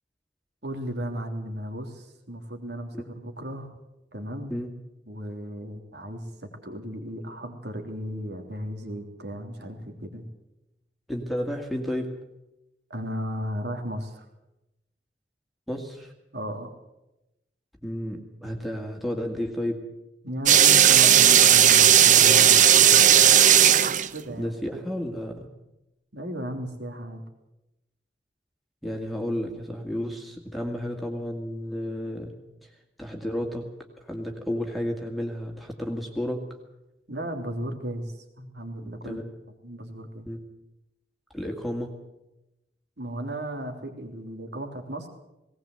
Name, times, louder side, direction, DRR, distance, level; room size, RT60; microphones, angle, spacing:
voice 1, 0.6-3.8 4.1-4.5 5.1-10.2 12.9-14.2 16.3-16.7 20.2-23.2 24.1-24.6 26.1-27.2 37.1-38.1 38.4-39.2 39.6-40.3 43.0-45.1, equal, 70° right, 4 dB, 3.4 m, -35 dB
voice 2, 11.1-12.1 15.7-16.1 17.8-19.8 24.4-25.5 28.8-32.3 32.6-32.7 33.0-33.7 34.1-36.5 39.0-39.3 40.3-40.5 41.3-41.9, equal, ahead, 1 dB, 2.2 m, -32 dB
sound 1, 20.5-24.3, right 10 dB, 45° right, 0.7 m, -15 dB
19.5 x 18.5 x 8.0 m, 0.94 s
head